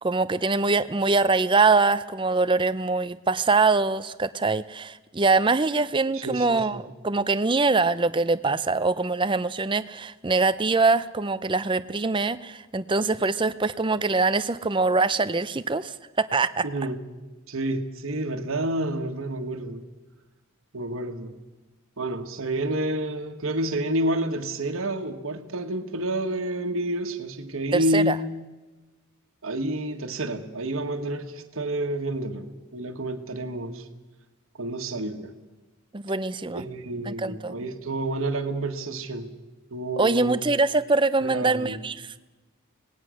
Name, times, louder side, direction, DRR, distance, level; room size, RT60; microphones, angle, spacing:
voice 1, 0.0-15.9 16.3-16.6 27.7-28.2 35.9-36.6 37.1-37.5 40.0-42.2, right 3 dB, 25° right, 0.6 m, -23 dB
voice 2, 6.1-6.8 16.6-17.0 17.5-19.8 20.7-21.3 22.0-28.2 29.4-33.8 34.6-35.3 36.5-39.3 39.7-40.5 41.2-41.8, right 1 dB, 70° right, 1.6 m, -29 dB
25.5 x 19.0 x 6.4 m
head